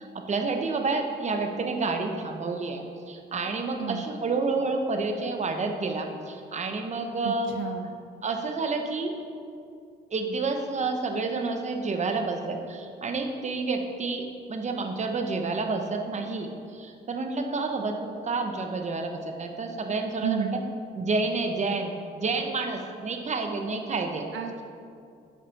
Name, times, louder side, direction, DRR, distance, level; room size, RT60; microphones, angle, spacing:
voice 1, 0.0-7.5 8.2-9.1 10.1-20.6 21.0-24.3, right 3 dB, 35° right, 4 dB, 0.9 m, -29 dB
voice 2, 7.2-7.9 20.2-20.6 24.3-24.7, right 8 dB, 75° right, 5 dB, 0.6 m, -32 dB
9.1 x 6.1 x 4.1 m, 2.4 s
cardioid pair, 90°, 20 cm